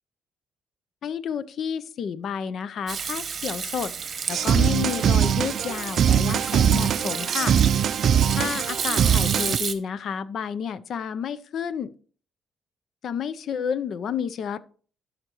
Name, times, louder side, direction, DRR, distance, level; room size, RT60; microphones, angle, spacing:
voice 1, 1.0-7.9 8.3-11.9 13.0-14.6, left 7 dB, 60° left, 0.5 m, -31 dB
Hands / Sink (filling or washing), 2.9-9.7, right 6 dB, 45° right, 1.0 m, -31 dB
sound 1, 4.3-9.6, right 8 dB, 60° right, 0.3 m, -22 dB
12.5 x 5.1 x 3.0 m
cardioid pair, 105°, 0 cm